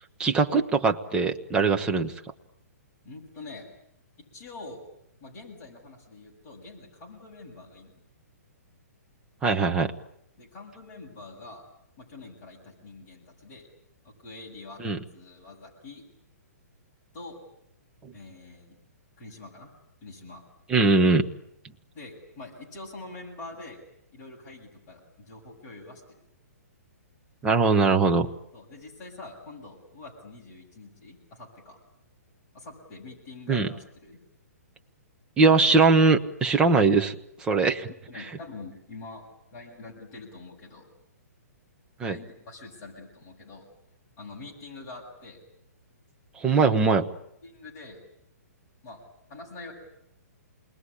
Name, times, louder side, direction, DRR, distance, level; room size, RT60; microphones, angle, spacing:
voice 1, 0.2-2.1 9.4-9.9 14.8-15.0 20.7-21.3 27.4-28.3 33.5-33.7 35.4-37.1 37.4-37.9 42.0-42.2 46.4-47.1, right 4 dB, 10° right, 4 dB, 1.0 m, -21 dB
voice 2, 3.0-3.7 4.3-4.8 5.2-7.9 10.4-11.6 12.0-13.7 14.0-14.8 15.1-16.0 17.1-17.4 18.1-18.8 19.2-19.7 20.0-20.4 21.9-23.8 24.1-26.2 28.5-31.8 32.5-34.2 38.1-40.9 42.1-43.6 44.2-45.4 46.8-47.0 47.4-48.0 48.8-49.0 49.3-49.7, left 3 dB, 25° left, -3 dB, 7.3 m, -45 dB
28.5 x 20.5 x 10.0 m, 0.77 s
hypercardioid pair, 165°, 9 cm